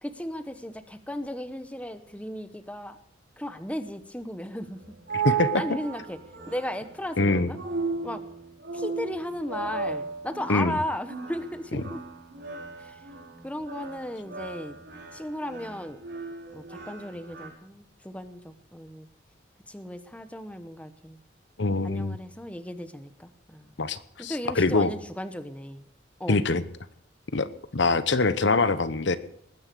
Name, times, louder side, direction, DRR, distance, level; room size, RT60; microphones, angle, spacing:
voice 1, 0.0-3.0 3.4-4.8 5.5-6.2 6.5-7.6 8.0-8.2 8.7-12.0 12.8-13.0 13.4-14.8 15.1-16.0 16.5-19.1 19.7-21.2 21.8-23.7 24.2-25.8 26.2-26.4, equal, 5° left, 10 dB, 1.0 m, -35 dB
sound 1, 4.6-17.5, right 5 dB, 60° right, 5.0 m, -35 dB
voice 2, 5.1-5.6 7.2-7.5 10.5-10.8 11.7-11.8 21.6-22.2 23.8-24.9 26.3-26.6 27.3-27.5 27.7-29.2, left 3 dB, 70° left, 13 dB, 0.9 m, -24 dB
20.0 x 9.7 x 6.8 m, 0.70 s
head